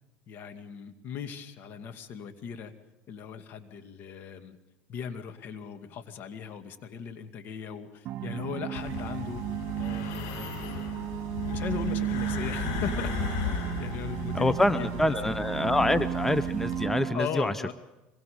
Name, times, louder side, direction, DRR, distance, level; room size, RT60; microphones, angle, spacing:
voice 1, 0.3-2.7 3.1-4.6 4.9-9.4 9.8-10.9 11.5-13.1 13.8-15.3 17.1-17.7, left 7 dB, 55° left, 7 dB, 2.2 m, -38 dB
sound 1, 8.1-17.2, right 12 dB, 50° right, 1.8 m, -34 dB
sound 2, 8.7-16.9, left 6 dB, 70° left, 5.9 m, -36 dB
voice 2, 14.3-17.5, left 1 dB, 5° left, 14 dB, 0.7 m, -26 dB
26.0 x 22.5 x 5.2 m, 1.0 s
supercardioid pair, 90°, 4 cm